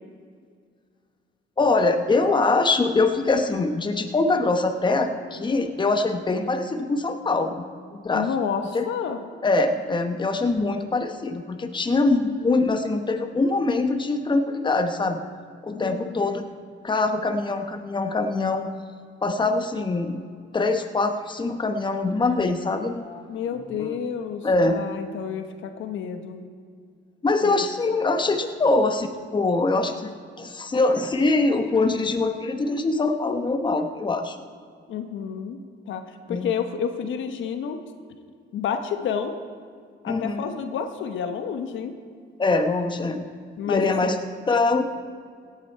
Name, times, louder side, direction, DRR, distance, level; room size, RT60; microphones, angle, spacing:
voice 1, 1.6-7.6 7.9-8.3 8.7-8.9 9.4-15.3 15.6-16.4 16.8-18.7 19.2-20.2 20.5-23.2 23.8-23.9 24.4-24.8 27.2-29.1 29.3-34.4 36.3-36.5 40.1-40.4 42.4-43.2 43.7-44.2 44.5-44.8, left 3 dB, 25° left, 7 dB, 0.9 m, -23 dB
voice 2, 8.1-9.2 15.7-16.2 23.3-26.4 27.4-27.6 34.9-35.6 35.9-37.8 38.5-39.4 40.0-41.9 43.6-44.1, left 7 dB, 75° left, 7 dB, 1.0 m, -30 dB
17.0 x 8.8 x 4.5 m, 2.1 s
cardioid pair, 90°, 20 cm